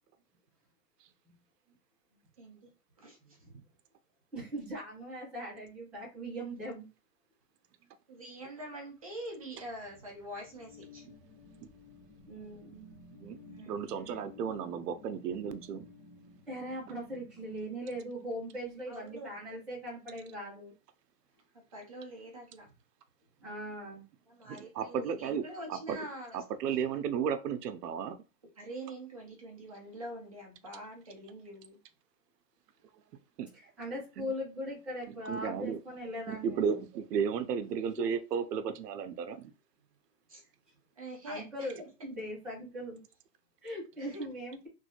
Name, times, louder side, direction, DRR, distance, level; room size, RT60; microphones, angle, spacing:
voice 1, 2.4-2.7 3.0-3.2 8.1-11.0 13.4-13.8 18.9-19.3 21.7-22.7 24.3-26.4 28.6-31.8 40.3-40.4 41.0-41.9 44.0-44.2, right 1 dB, 25° right, 0.5 m, -45 dB
voice 2, 3.3-3.6 4.3-6.9 12.3-12.9 16.5-20.7 23.4-24.0 33.5-36.8 38.0-38.1 41.2-43.0 43.6-44.7, equal, ahead, 1.2 m, -40 dB
sound 1, 9.3-18.5, left 3 dB, 60° left, 1.2 m, -55 dB
voice 3, 13.7-15.9 24.4-26.1 26.3-28.2 33.4-33.5 34.2-34.3 35.1-35.8 36.3-39.5, right 7 dB, 85° right, 0.6 m, -34 dB
3.1 x 2.6 x 2.8 m
hypercardioid pair, 175°, 47 cm